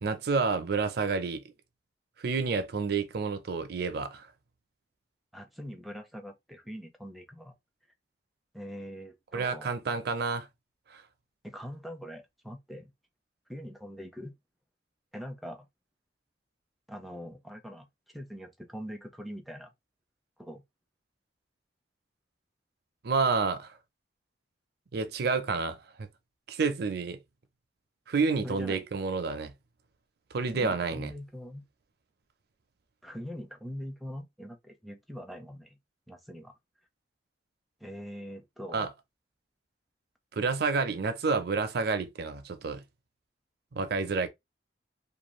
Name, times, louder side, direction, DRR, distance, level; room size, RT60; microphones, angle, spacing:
voice 1, 0.0-1.4 2.2-4.3 9.3-10.5 10.9-11.0 23.0-23.7 24.9-26.1 26.5-27.2 28.1-29.5 30.3-31.1 38.7-38.9 40.3-42.8 43.7-44.3, right 4 dB, 60° right, 0.5 m, -29 dB
voice 2, 5.3-7.6 8.5-9.7 11.4-12.9 13.5-14.3 15.1-15.7 16.9-17.9 18.1-19.7 20.4-20.6 28.4-28.8 30.5-31.7 33.0-35.8 36.1-36.5 37.8-38.9, equal, ahead, 0.5 m, -42 dB
2.6 x 2.2 x 3.0 m
head